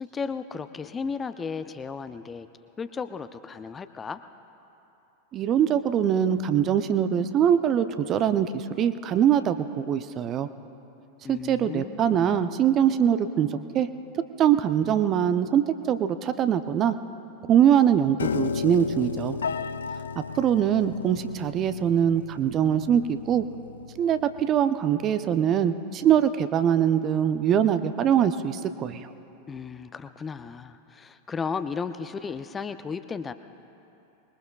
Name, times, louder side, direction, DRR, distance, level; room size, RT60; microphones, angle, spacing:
voice 1, 0.0-2.5 2.8-4.2 11.2-12.4 29.5-33.3, left 5 dB, 20° left, 11 dB, 0.5 m, -34 dB
voice 2, 5.3-10.5 11.3-13.9 14.4-16.9 17.5-19.4 20.4-23.4 24.0-29.1, right 9 dB, 30° right, 11 dB, 0.6 m, -23 dB
Piano, 18.2-24.4, left 5 dB, 65° left, 0.3 m, -34 dB
25.5 x 21.5 x 2.4 m, 2.9 s
figure-of-eight pair, 90°, 0 cm